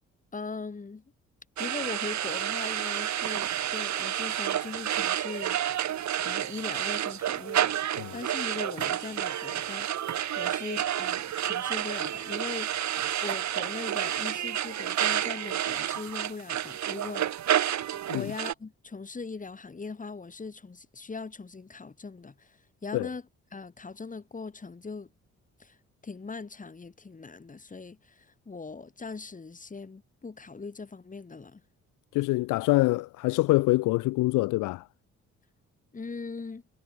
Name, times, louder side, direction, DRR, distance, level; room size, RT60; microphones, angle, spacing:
voice 1, 0.3-1.0 1.6-5.6 6.2-7.8 8.1-12.8 13.2-17.3 18.1-23.2 23.5-25.1 25.6-25.8 26.0-31.6 35.9-36.6, left 4 dB, 25° left, 3.2 m, -40 dB
sound 1, 1.6-18.5, right 11 dB, 65° right, 3.2 m, -30 dB
voice 2, 32.1-34.9, left 20 dB, 85° left, 0.5 m, -25 dB
cardioid pair, 90°, 30 cm